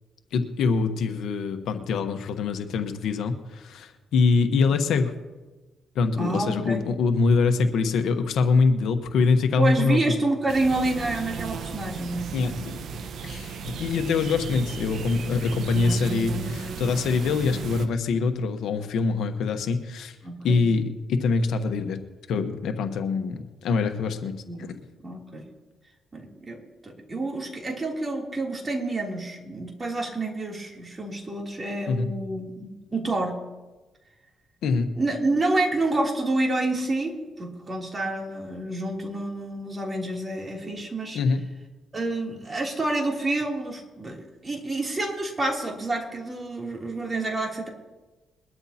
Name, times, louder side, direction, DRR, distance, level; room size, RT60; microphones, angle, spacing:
voice 1, 0.3-5.1 5.9-10.0 12.3-12.7 13.2-20.2 20.4-22.0 22.3-24.3 24.6-24.8 31.9-32.1 34.6-34.9 41.1-41.4, left 4 dB, 75° left, 7 dB, 1.1 m, -24 dB
voice 2, 6.2-6.8 9.6-12.6 20.2-20.6 24.5-24.7 25.0-25.5 26.1-33.4 35.0-41.2 41.9-47.7, right 2 dB, 30° right, -1 dB, 3.1 m, -28 dB
sound 1, 10.5-17.9, right 5 dB, 65° right, 1.0 m, -35 dB
22.0 x 12.5 x 2.9 m, 1.2 s
cardioid pair, 90°, 0 cm